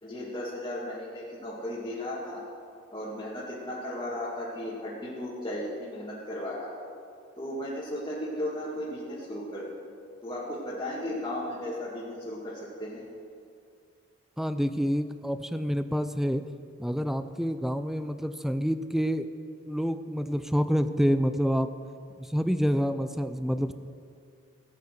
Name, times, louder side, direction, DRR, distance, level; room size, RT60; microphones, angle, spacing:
voice 1, 0.0-2.4 2.9-6.7 7.4-9.8 10.2-13.0, left 1 dB, 25° left, -8 dB, 2.1 m, -35 dB
voice 2, 14.4-16.4 16.8-19.3 19.7-21.7 22.2-23.7, equal, ahead, 11 dB, 0.5 m, -27 dB
15.5 x 8.6 x 6.7 m, 2.4 s
head